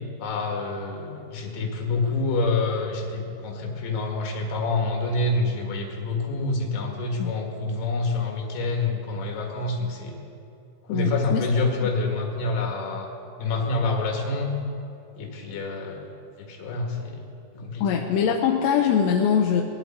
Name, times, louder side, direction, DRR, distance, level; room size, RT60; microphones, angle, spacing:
voice 1, 0.2-10.1 10.9-13.1 13.4-14.5 15.2-16.1 16.4-17.2 17.6-18.0, left 3 dB, 70° left, 0 dB, 3.7 m, -27 dB
voice 2, 10.9-11.5 11.8-11.9 17.8-19.6, left 7 dB, 85° left, 0 dB, 3.0 m, -22 dB
21.0 x 11.0 x 4.4 m, 2.7 s
omnidirectional pair, 5.0 m